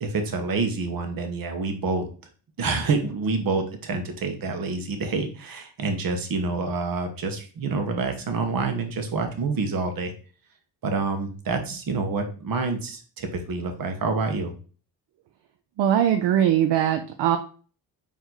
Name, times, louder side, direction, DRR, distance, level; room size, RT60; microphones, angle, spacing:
voice 1, 0.0-2.0 2.6-10.1 10.8-14.5, right 4 dB, 55° right, 6 dB, 1.2 m, -27 dB
voice 2, 15.8-17.4, right 10 dB, 70° right, 7 dB, 0.6 m, -21 dB
4.3 x 2.9 x 3.9 m, 0.39 s
supercardioid pair, 70°, 42 cm